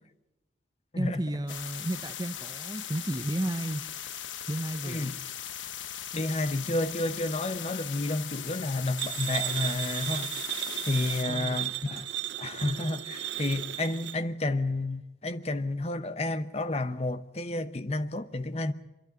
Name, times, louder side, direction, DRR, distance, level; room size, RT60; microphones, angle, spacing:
voice 1, 1.0-3.8 4.5-5.1 11.0-11.7, right 1 dB, 20° right, 0.7 m, -33 dB
sound 1, 1.5-11.2, left 10 dB, 80° left, 1.0 m, -39 dB
voice 2, 4.8-5.1 6.1-10.3 10.9-12.1 12.4-18.7, left 2 dB, 35° left, 0.8 m, -31 dB
sound 2, 9.0-14.2, right 14 dB, 70° right, 0.8 m, -34 dB
25.5 x 11.5 x 9.3 m
head